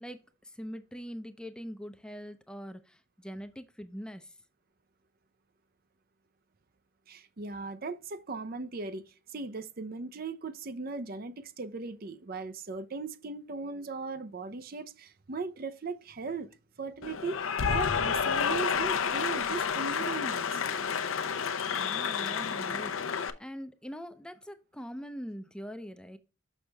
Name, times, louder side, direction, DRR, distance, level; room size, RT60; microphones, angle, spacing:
voice 1, 0.0-4.4 21.7-26.2, equal, 5° left, 0.5 m, -43 dB
voice 2, 7.1-20.6, right 4 dB, 45° right, 0.5 m, -38 dB
Cheering / Applause, 17.0-23.3, left 6 dB, 85° left, 0.7 m, -30 dB
6.4 x 6.3 x 3.3 m
head